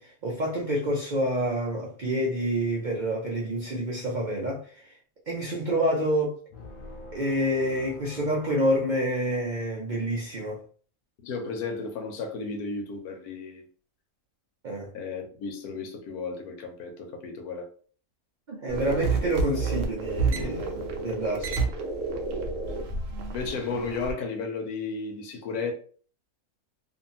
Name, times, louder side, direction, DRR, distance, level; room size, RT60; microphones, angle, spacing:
voice 1, 0.0-4.9 5.3-6.4 7.1-10.6 14.6-14.9 18.5-20.7 21.0-21.6, equal, 85° right, 0.4 m, -28 dB
sound 1, 6.5-9.8, left 2 dB, 70° left, 0.5 m, -46 dB
voice 2, 11.2-13.6 14.9-17.7 20.4-20.7 23.3-25.7, left 4 dB, 90° left, 1.2 m, -34 dB
sound 2, 18.7-24.1, right 3 dB, 60° right, 0.7 m, -30 dB
2.6 x 2.6 x 2.7 m
omnidirectional pair, 1.6 m